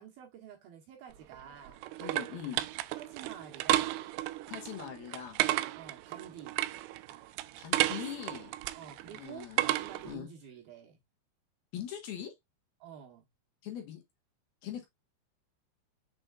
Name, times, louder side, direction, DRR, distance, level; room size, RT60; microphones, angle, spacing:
voice 1, 0.0-1.8 3.0-4.0 5.8-6.6 8.7-11.0 12.8-13.3, right 8 dB, 65° right, 2.6 m, -49 dB
sound 1, 1.1-10.1, right 16 dB, 85° right, 2.3 m, -33 dB
voice 2, 2.0-2.6 4.5-5.4 7.6-8.5 9.1-9.6 10.0-10.3 11.7-12.3 13.6-14.0 14.6-14.9, left 10 dB, 65° left, 2.9 m, -41 dB
7.5 x 6.1 x 2.4 m
omnidirectional pair, 5.4 m